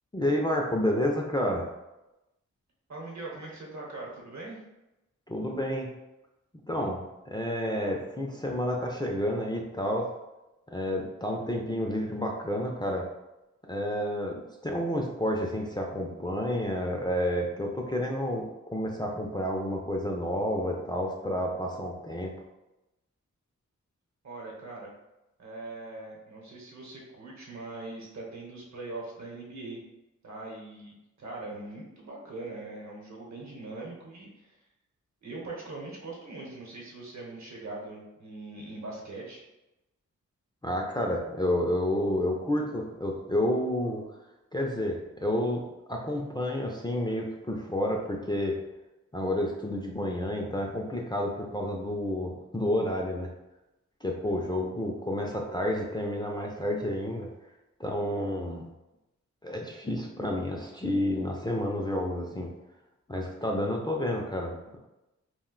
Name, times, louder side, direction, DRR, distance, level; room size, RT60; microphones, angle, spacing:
voice 1, 0.1-1.7 5.3-5.9 6.7-10.1 10.7-13.0 13.7-18.5 18.7-22.3 40.6-44.0 44.5-48.6 49.1-53.3 54.0-57.3 57.8-58.7 59.4-62.5 63.1-64.8, left 1 dB, 15° left, -1 dB, 0.4 m, -30 dB
voice 2, 2.9-4.6 24.2-24.9 25.4-29.8 30.2-34.6 35.2-39.4, right 2 dB, 65° right, -2 dB, 0.9 m, -41 dB
2.4 x 2.1 x 3.7 m, 0.96 s
wide cardioid pair, 80°, 30 cm